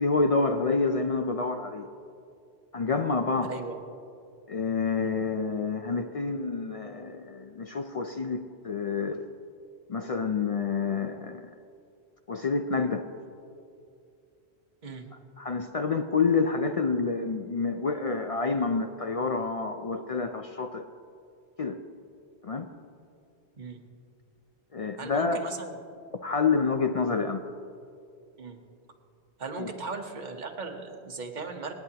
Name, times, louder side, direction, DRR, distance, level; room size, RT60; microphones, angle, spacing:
voice 1, 0.0-1.9 2.7-3.5 4.5-9.3 9.9-11.5 12.3-13.1 15.4-20.9 21.6-21.8 22.4-22.7 24.7-25.4 26.2-27.4 29.6-29.7, left 4 dB, 55° left, 6 dB, 0.4 m, -28 dB
voice 2, 3.4-3.8 14.8-15.1 23.6-23.8 25.0-25.7 27.1-27.2 28.4-28.6 29.4-31.7, right 4 dB, 45° right, 3 dB, 1.2 m, -38 dB
26.5 x 9.5 x 2.9 m, 2.5 s
omnidirectional pair, 1.1 m